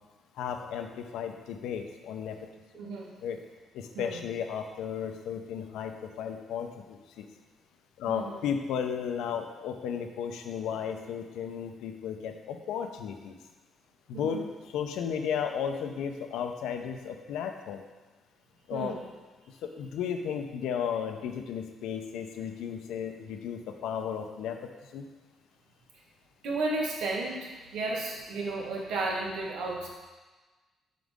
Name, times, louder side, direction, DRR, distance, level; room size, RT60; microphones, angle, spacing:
voice 1, 0.4-2.4 3.2-3.4 3.7-7.3 8.0-13.4 14.1-14.4 14.7-17.8 18.7-18.9 19.6-24.6 24.8-25.1, left 7 dB, 90° left, 5 dB, 0.6 m, -34 dB
voice 2, 2.7-3.1 3.9-4.2 8.0-8.5 14.1-14.4 18.7-19.0 26.4-29.9, right 2 dB, 90° right, -3 dB, 1.4 m, -33 dB
7.6 x 5.1 x 3.6 m, 1.2 s
cardioid pair, 90°, 0 cm